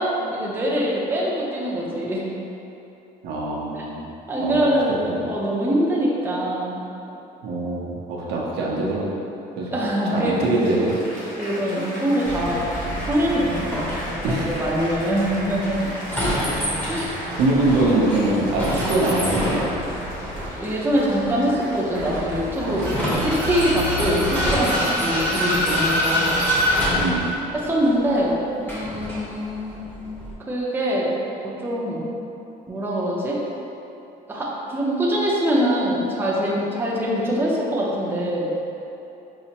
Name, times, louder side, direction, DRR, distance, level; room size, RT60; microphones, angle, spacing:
voice 1, 0.0-2.3 3.8-3.9 4.3-6.8 9.7-10.4 11.4-16.0 16.9-17.2 18.2-18.3 20.5-26.4 27.5-29.8 30.5-31.1 31.4-32.0 32.7-33.4 34.3-38.5, equal, 10° right, -5 dB, 0.6 m, -24 dB
voice 2, 3.2-4.1 4.4-4.7 5.0-5.2 7.4-9.1 9.6-9.8 10.1-11.0 14.2-14.5 17.4-19.7 22.6-22.9 26.9-27.3, right 2 dB, 80° right, -4 dB, 0.7 m, -23 dB
Applause, 9.5-9.6 10.3-26.2 26.9-27.3, equal, 55° left, 0.9 m, -37 dB
Vehicle, 12.3-30.3, equal, 10° left, 0.9 m, -26 dB
5.7 x 2.1 x 2.8 m, 3.0 s
cardioid pair, 110°, 17 cm